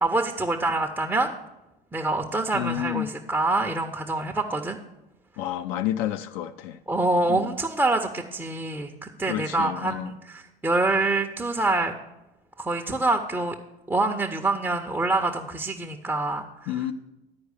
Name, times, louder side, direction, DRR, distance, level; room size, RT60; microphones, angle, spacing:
voice 1, 0.0-1.3 1.9-4.8 6.9-12.0 12.6-13.5 13.9-16.8, right 2 dB, 5° right, 0.6 m, -26 dB
voice 2, 2.5-3.1 5.4-6.8 7.3-7.5 9.2-10.1 16.7-16.9, left 12 dB, 50° left, 0.5 m, -30 dB
10.0 x 4.7 x 6.5 m
figure-of-eight pair, 70°, 29 cm